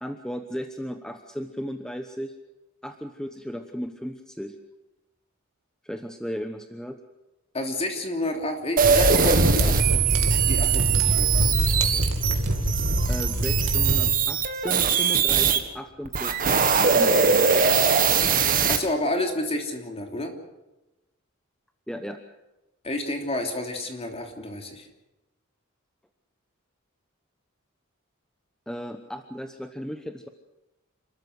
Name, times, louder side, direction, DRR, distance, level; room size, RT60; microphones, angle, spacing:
voice 1, 0.0-2.3 2.8-4.6 5.8-7.0 13.1-17.7 21.9-22.2 28.7-30.3, equal, 5° left, 6 dB, 1.0 m, -35 dB
voice 2, 7.5-11.3 18.7-20.3 22.8-24.9, left 1 dB, 30° left, 3 dB, 3.2 m, -30 dB
sound 1, 8.8-15.6 16.0-18.8, right 6 dB, 40° right, 1.9 m, -21 dB
sound 2, 8.8-14.1, right 1 dB, 70° right, 2.6 m, -24 dB
28.0 x 13.5 x 8.0 m, 1.0 s
head